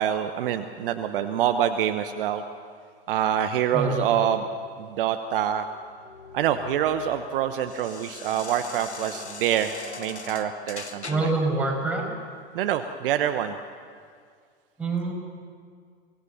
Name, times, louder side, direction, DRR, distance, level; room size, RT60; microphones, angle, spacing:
voice 1, 0.0-2.4 3.1-4.5 4.8-5.7 6.3-9.7 10.0-11.3 12.5-13.6, right 10 dB, 55° right, 9 dB, 1.0 m, -26 dB
voice 2, 3.7-4.3 11.1-12.1 14.8-15.1, right 3 dB, 5° right, -2 dB, 6.0 m, -26 dB
sound 1, 5.6-11.5, left 4 dB, 90° left, 1.3 m, -41 dB
24.5 x 18.0 x 7.1 m, 2.1 s
figure-of-eight pair, 90°, 32 cm